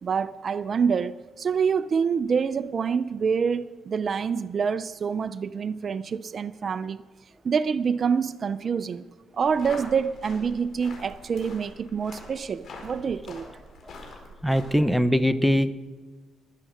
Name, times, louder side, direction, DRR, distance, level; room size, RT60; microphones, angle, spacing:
voice 1, 0.0-7.0 7.4-9.0 9.3-13.5, right 6 dB, 45° right, 0.4 m, -26 dB
sound 1, 9.4-15.0, left 2 dB, 60° left, 4.2 m, -44 dB
voice 2, 14.4-15.7, equal, ahead, 0.7 m, -21 dB
21.0 x 7.5 x 6.5 m
cardioid pair, 90°, 0 cm